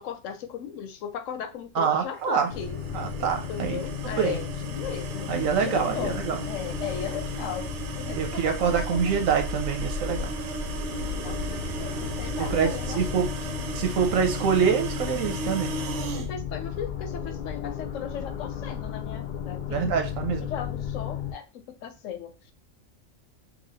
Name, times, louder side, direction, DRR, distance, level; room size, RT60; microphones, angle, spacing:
voice 1, 0.0-2.8 3.5-5.3 5.6-6.2 6.5-7.7 7.9-9.1 11.2-13.2 16.2-19.9 20.5-22.3, left 8 dB, 80° left, 9 dB, 1.0 m, -37 dB
voice 2, 1.7-2.5 2.9-3.8 4.2-4.4 5.3-6.4 8.1-10.3 12.4-13.3 13.7-15.7 19.7-20.5, right 7 dB, 90° right, 5 dB, 1.2 m, -25 dB
sound 1, 2.4-16.3, right 5 dB, 70° right, 0.9 m, -37 dB
sound 2, 2.5-21.3, left 6 dB, 55° left, 0.5 m, -34 dB
3.0 x 2.8 x 4.0 m, 0.30 s
omnidirectional pair, 1.3 m